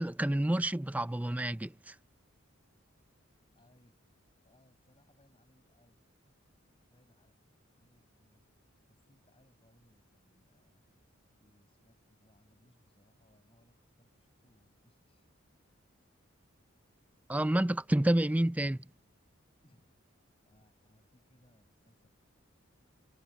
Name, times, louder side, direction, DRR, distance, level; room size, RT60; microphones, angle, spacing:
voice 1, 0.0-1.9 17.3-18.8, right 1 dB, 5° right, 0.4 m, -29 dB
voice 2, 3.5-7.4 7.8-10.9 11.4-15.3 19.6-22.1, left 1 dB, 25° left, 6.2 m, -69 dB
head